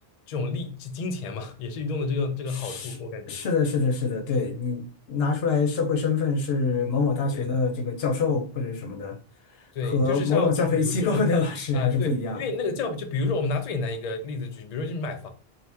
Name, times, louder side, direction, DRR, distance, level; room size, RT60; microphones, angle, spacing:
voice 1, 0.3-3.4 7.3-7.5 9.7-11.2 11.7-15.3, left 3 dB, 55° left, 0.5 m, -30 dB
voice 2, 2.5-3.0 3.3-4.8 5.1-9.2 9.8-12.4, left 4 dB, 80° left, 0.9 m, -25 dB
2.8 x 2.1 x 3.3 m
omnidirectional pair, 1.0 m